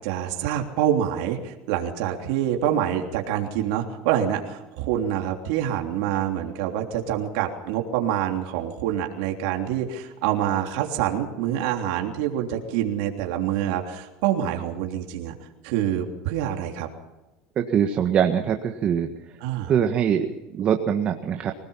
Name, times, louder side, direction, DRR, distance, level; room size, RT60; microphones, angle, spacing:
voice 1, 0.0-15.3 15.6-16.9 19.4-19.7, right 10 dB, 80° right, 2 dB, 3.3 m, -26 dB
voice 2, 17.6-19.1 19.7-20.3 20.5-21.5, right 8 dB, 40° right, 5 dB, 1.7 m, -22 dB
25.0 x 18.5 x 5.7 m, 1.0 s
supercardioid pair, 135°, 3 cm